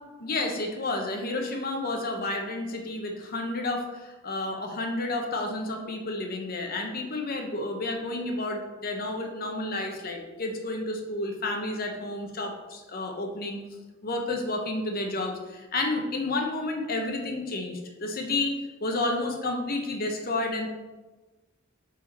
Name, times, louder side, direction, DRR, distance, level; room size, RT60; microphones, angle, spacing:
voice 1, 0.2-13.6 14.0-20.7, left 2 dB, 45° left, 3 dB, 0.9 m, -31 dB
5.6 x 5.0 x 4.2 m, 1.2 s
head